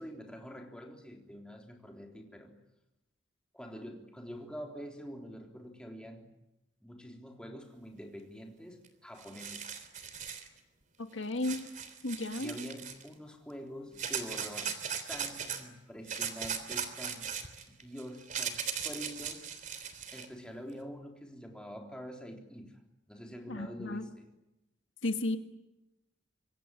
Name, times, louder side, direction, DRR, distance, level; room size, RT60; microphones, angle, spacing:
voice 1, 0.0-2.5 3.5-6.3 6.8-9.7 12.4-14.7 15.1-17.3 17.7-19.4 20.1-22.8 23.1-24.3, equal, 5° left, 2 dB, 3.7 m, -46 dB
sound 1, 8.9-9.0 9.2-10.5 11.4-13.1 14.0-15.6 16.1-20.3, right 7 dB, 40° right, 3.3 m, -38 dB
voice 2, 11.0-11.7 12.0-12.5 23.5-24.0 25.0-25.4, left 2 dB, 70° left, 7 dB, 1.8 m, -33 dB
26.5 x 23.0 x 9.1 m, 0.93 s
head